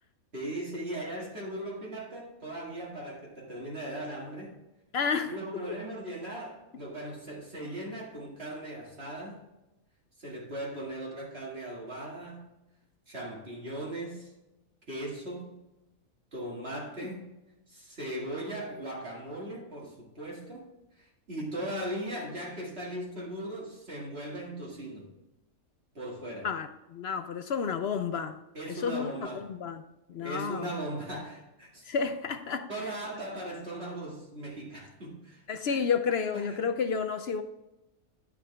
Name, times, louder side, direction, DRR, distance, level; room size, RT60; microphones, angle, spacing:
voice 1, 0.3-4.6 5.2-9.4 10.2-12.5 13.1-14.3 14.9-15.6 16.3-17.3 17.7-20.7 21.0-25.1 25.9-26.5 28.5-29.5 30.2-31.9 32.7-35.8 36.3-36.7, right 1 dB, 45° right, -3 dB, 2.2 m, -38 dB
voice 2, 4.9-5.8 26.4-28.4 28.7-29.8 30.1-30.7 31.9-32.7 35.5-37.4, left 6 dB, 60° left, 9 dB, 0.7 m, -31 dB
10.0 x 6.1 x 3.4 m, 0.96 s
omnidirectional pair, 1.5 m